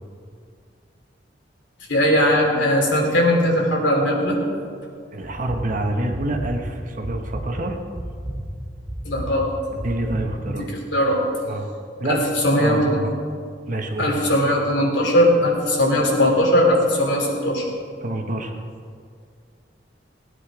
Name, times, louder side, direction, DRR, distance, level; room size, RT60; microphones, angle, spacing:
voice 1, 1.9-4.3 9.0-9.5 10.5-10.6 10.9-11.2 12.1-12.2 12.4-13.0 14.0-17.6, equal, 85° left, -1 dB, 3.3 m, -19 dB
voice 2, 5.1-7.8 9.7-10.7 11.4-11.7 12.0-12.3 12.5-13.1 13.7-14.1 18.0-18.6, right 1 dB, 50° right, 3 dB, 1.5 m, -27 dB
sound 1, 5.2-10.5, equal, 20° right, 3.9 m, -33 dB
18.5 x 9.7 x 5.1 m, 2.2 s
head